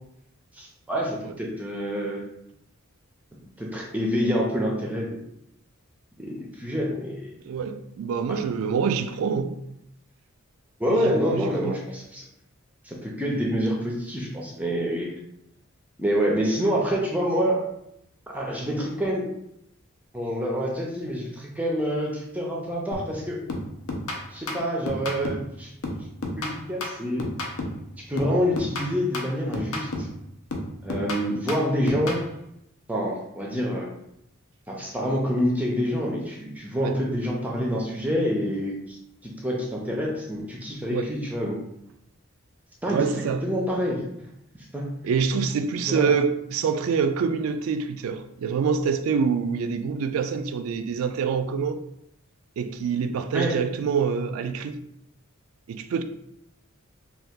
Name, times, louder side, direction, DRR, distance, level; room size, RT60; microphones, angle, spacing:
voice 1, 0.5-2.2 3.6-5.2 6.2-7.3 10.8-12.3 12.8-15.1 16.0-17.6 18.3-19.3 20.1-23.4 24.3-25.7 26.4-27.2 28.0-30.1 30.8-32.2 32.9-33.9 34.7-39.0 39.2-41.6 42.8-44.0 44.7-44.9 45.9-46.1 53.3-53.5, equal, 5° right, 0.4 m, -27 dB
voice 2, 7.5-9.6 10.9-11.8 36.8-37.0 40.9-41.1 42.9-43.5 45.0-51.8 52.6-54.8 55.7-56.0, right 6 dB, 75° right, 0.3 m, -26 dB
sound 1, 22.9-23.2 23.5-25.5 25.8-27.9 28.2-30.2 30.5-32.3, left 1 dB, 75° left, 0.6 m, -32 dB
2.8 x 2.3 x 3.5 m
head